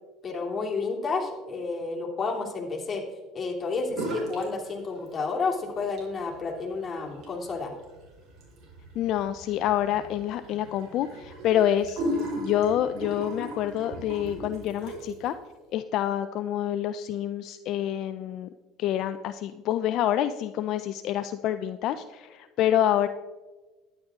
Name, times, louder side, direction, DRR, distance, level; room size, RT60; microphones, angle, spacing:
voice 1, 0.2-3.0 3.3-7.7, left 4 dB, 30° left, -1 dB, 2.9 m, -31 dB
sound 1, 3.9-4.5 4.8-5.4 5.8-15.3, equal, 55° right, 4.2 m, -37 dB
voice 2, 8.9-12.0 12.4-15.4 15.7-18.5 18.8-23.1, left 11 dB, 60° left, 10 dB, 0.5 m, -27 dB
12.0 x 10.5 x 3.7 m, 1.2 s
supercardioid pair, 85°, 0 cm